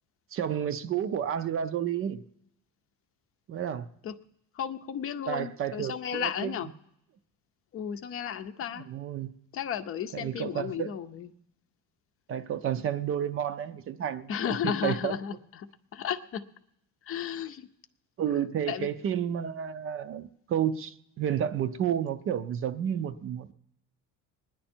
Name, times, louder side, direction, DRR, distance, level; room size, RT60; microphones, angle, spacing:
voice 1, 0.3-2.2 3.5-3.9 5.3-6.5 8.9-9.3 10.1-10.9 12.3-14.3 14.6-15.1 18.2-23.5, right 9 dB, 40° right, 0.5 m, -31 dB
voice 2, 4.5-6.7 7.7-8.9 9.5-11.3 14.3-16.4 17.0-17.7 18.7-18.9, left 8 dB, 40° left, 0.6 m, -33 dB
22.5 x 10.0 x 4.4 m
cardioid pair, 160°, 33 cm